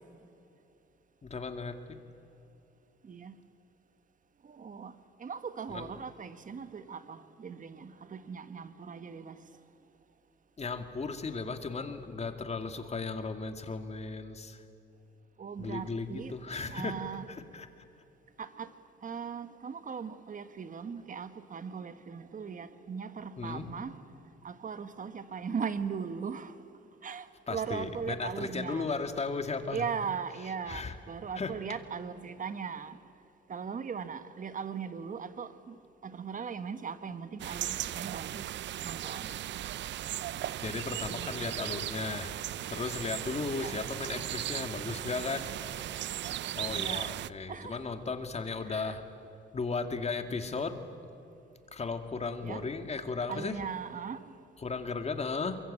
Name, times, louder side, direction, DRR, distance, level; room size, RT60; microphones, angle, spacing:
voice 1, 1.2-1.7 5.7-5.9 10.6-14.6 15.6-17.0 17.3-17.7 23.4-23.7 27.5-29.9 30.7-30.9 31.4-31.5 40.6-42.3 42.7-45.5 46.6-49.0 49.5-50.8 51.7-53.6 54.6-55.6, left 4 dB, 35° left, 2.3 m, -35 dB
voice 2, 3.0-3.4 4.4-4.9 5.2-9.4 15.4-16.3 16.7-17.3 18.4-18.7 19.0-23.9 24.4-26.5 27.0-28.9 29.7-33.0 33.5-35.7 36.0-38.5 38.8-39.4 41.1-41.4 43.5-43.8 46.7-47.2 47.5-47.8 48.6-49.0 52.4-52.6 53.3-54.2, right 6 dB, 40° right, 1.5 m, -39 dB
sound 1, 37.4-47.3, right 12 dB, 65° right, 0.6 m, -37 dB
24.0 x 22.5 x 8.8 m
cardioid pair, 90°, 20 cm